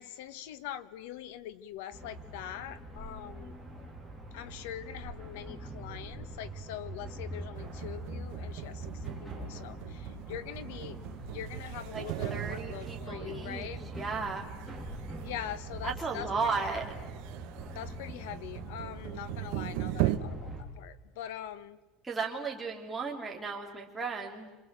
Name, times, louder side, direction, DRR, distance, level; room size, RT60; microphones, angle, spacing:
voice 1, 0.0-3.5 4.3-13.8 15.2-16.8 17.7-21.8, left 11 dB, 85° left, 14 dB, 1.5 m, -43 dB
sound 1, 1.9-20.6, right 1 dB, 10° left, 4.0 m, -44 dB
sound 2, 7.5-20.2, right 15 dB, 60° right, 1.3 m, -39 dB
voice 2, 12.3-14.5 15.8-17.0 22.0-24.5, right 4 dB, 10° right, -2 dB, 3.3 m, -35 dB
27.5 x 27.0 x 7.7 m, 1.1 s
cardioid pair, 175°, 0 cm